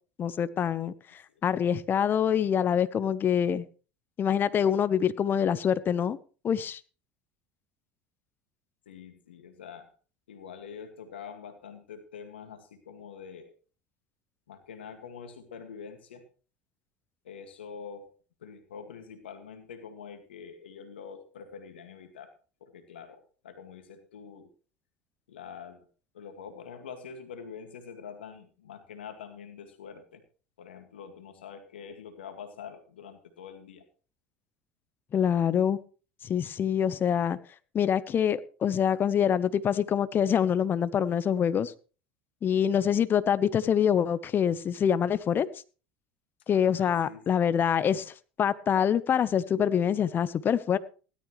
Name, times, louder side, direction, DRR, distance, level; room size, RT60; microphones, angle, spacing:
voice 1, 0.2-0.9 1.4-3.7 4.2-6.2 6.4-6.8 35.1-35.8 36.2-37.4 37.7-41.7 42.4-45.5 46.5-50.8, left 8 dB, 35° left, 1.0 m, -25 dB
voice 2, 8.9-9.9 10.3-13.5 14.5-16.2 17.2-18.1 18.4-22.3 22.6-24.5 25.3-25.9 26.1-30.2 30.6-33.8 46.5-47.4, left 6 dB, 85° left, 2.1 m, -45 dB
17.0 x 12.5 x 3.2 m
hypercardioid pair, 80°, 6 cm